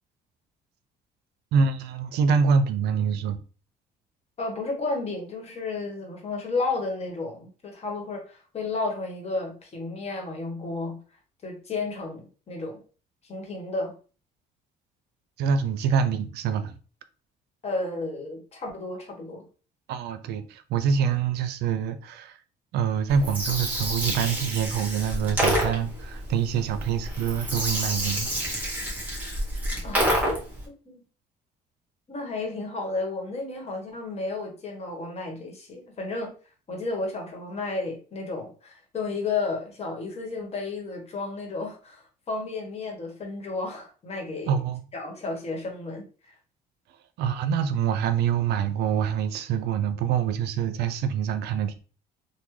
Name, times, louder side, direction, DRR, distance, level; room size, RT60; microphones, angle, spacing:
voice 1, 1.5-3.4 15.4-16.7 19.9-22.4 22.7-28.3 44.5-44.8 47.2-51.8, right 7 dB, 75° right, 0.5 m, -25 dB
voice 2, 4.4-11.0 11.4-12.8 13.2-14.0 17.6-19.5 29.8-30.1 30.8-31.0 32.1-36.3 36.7-44.6 44.9-46.4, left 3 dB, 40° left, 1.2 m, -32 dB
Gurgling, 23.1-30.6, equal, 10° right, 1.4 m, -28 dB
3.5 x 2.1 x 3.1 m
cardioid pair, 110°, 17 cm